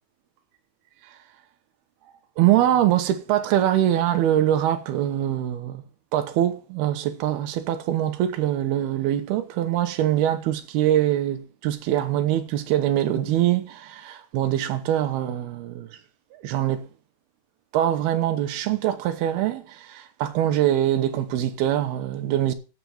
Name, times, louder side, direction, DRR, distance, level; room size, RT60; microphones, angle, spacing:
voice 1, 2.4-5.8 6.1-15.9 16.4-16.9 17.7-22.5, right 12 dB, 75° right, 2.9 m, -23 dB
7.8 x 7.0 x 7.8 m
omnidirectional pair, 4.7 m